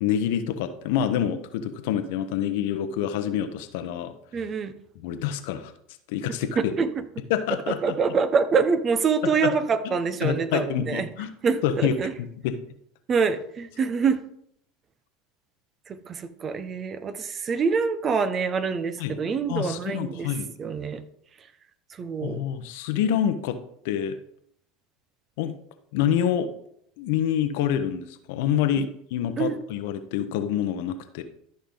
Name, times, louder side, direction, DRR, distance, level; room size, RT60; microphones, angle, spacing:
voice 1, 0.0-4.1 4.9-5.7 6.1-6.6 7.3-7.9 9.2-9.5 9.8-9.9 10.2-11.3 11.6-11.9 12.4-12.6 19.0-19.2 19.5-20.5 22.2-23.6 23.8-24.2 25.4-25.5 25.9-26.5 27.0-31.2, left 9 dB, 65° left, 9 dB, 1.0 m, -27 dB
voice 2, 4.3-4.7 6.6-6.9 7.7-11.1 11.4-12.1 13.1-14.2 15.9-20.3 20.6-21.0 21.9-22.4 28.8-28.9 29.4-29.6, right 5 dB, 35° right, 12 dB, 1.0 m, -25 dB
13.0 x 5.6 x 3.9 m, 0.71 s
hypercardioid pair, 80°, 0 cm